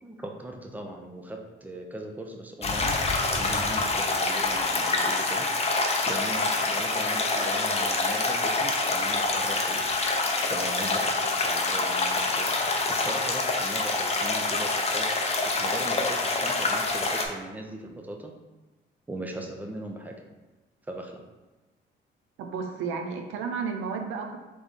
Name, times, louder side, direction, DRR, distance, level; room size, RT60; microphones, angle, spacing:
voice 1, 0.0-3.0 3.3-5.5 6.1-9.8 10.5-12.5 12.9-15.0 15.6-18.3 19.1-20.2 20.9-21.2, right 1 dB, 10° right, 2 dB, 0.6 m, -39 dB
sound 1, 2.6-17.3, left 3 dB, 30° left, 0.7 m, -26 dB
voice 2, 22.4-24.4, right 5 dB, 85° right, 4 dB, 0.6 m, -32 dB
3.5 x 3.2 x 4.0 m, 1.2 s
cardioid pair, 90°, 20 cm